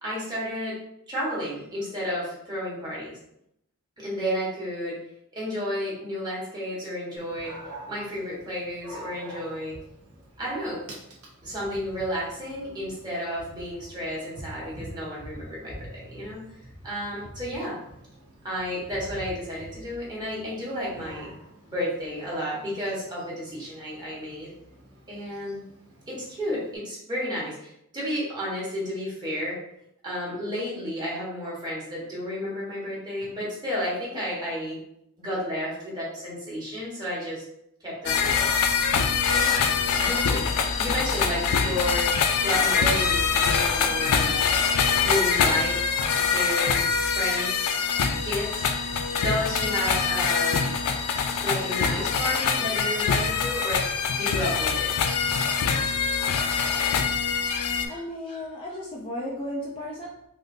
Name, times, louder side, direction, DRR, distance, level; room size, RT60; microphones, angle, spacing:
voice 1, 0.0-0.8 1.1-3.2 4.0-5.0 5.3-7.6 7.9-9.8 10.4-10.8 11.4-16.4 16.8-17.8 18.4-21.3 21.7-24.5 25.1-25.6 26.1-29.6 30.0-34.8 35.2-37.4 37.8-38.5 39.3-39.6 40.0-40.4 40.8-42.1 42.4-44.4 44.9-45.8 46.2-46.8 47.1-47.8 48.2-48.6 49.1-50.6 51.4-54.9, equal, 20° right, -7 dB, 1.2 m, -32 dB
Dog, 7.2-26.8, right 1 dB, 65° right, 0.8 m, -46 dB
sound 1, 38.1-57.9, left 6 dB, 90° left, 0.4 m, -24 dB
voice 2, 57.4-60.3, left 1 dB, 25° left, -4 dB, 0.4 m, -35 dB
3.7 x 2.5 x 2.6 m, 0.78 s
head